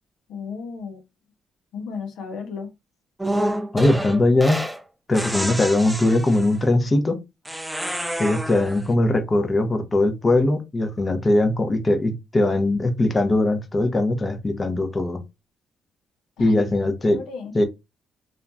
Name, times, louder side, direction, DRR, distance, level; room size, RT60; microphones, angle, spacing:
voice 1, 0.3-1.0 1.7-2.7 16.4-16.6 17.0-17.5, left 5 dB, 90° left, 0.8 m, -34 dB
sound 1, 3.2-4.8 5.1-6.6 7.4-8.9, right 1 dB, 5° right, 0.4 m, -28 dB
voice 2, 3.7-4.6 5.1-7.2 8.2-15.2 16.4-17.2 17.5-17.6, left 2 dB, 25° left, 0.7 m, -20 dB
2.9 x 2.5 x 2.2 m
cardioid pair, 90°, 0 cm